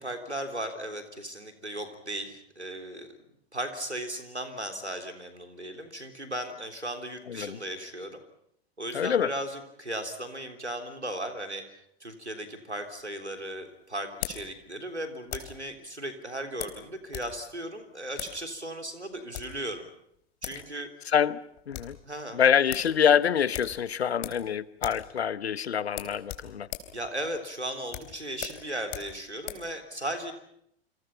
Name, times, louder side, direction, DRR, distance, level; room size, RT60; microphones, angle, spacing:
voice 1, 0.0-3.2 3.5-8.2 8.8-19.9 20.4-21.1 22.0-22.4 26.9-30.3, right 1 dB, 90° right, 6 dB, 3.6 m, -36 dB
voice 2, 7.3-7.6 8.9-9.3 21.1-21.4 21.7-22.0 22.3-26.7, left 8 dB, 70° left, 18 dB, 1.1 m, -25 dB
sound 1, 12.7-15.7 16.6-17.3 17.6-17.7 18.1-18.4 19.1-19.6 20.1-20.2 20.4-20.7 21.0-21.1 21.4-22.0 22.3-22.4 22.7-22.9 23.5-24.5 24.7-25.1 25.4-25.5 25.9-29.7, left 14 dB, 40° left, 3.8 m, -40 dB
28.5 x 26.0 x 5.8 m, 0.73 s
figure-of-eight pair, 90°, 33 cm